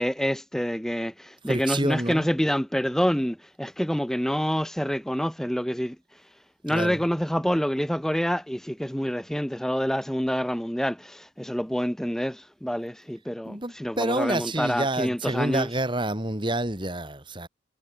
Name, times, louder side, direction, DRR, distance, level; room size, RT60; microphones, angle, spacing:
voice 1, 0.0-15.7, equal, ahead, 0.8 m, -27 dB
voice 2, 1.5-2.3 6.7-7.0 13.4-17.5, right 1 dB, 25° right, 2.8 m, -28 dB
head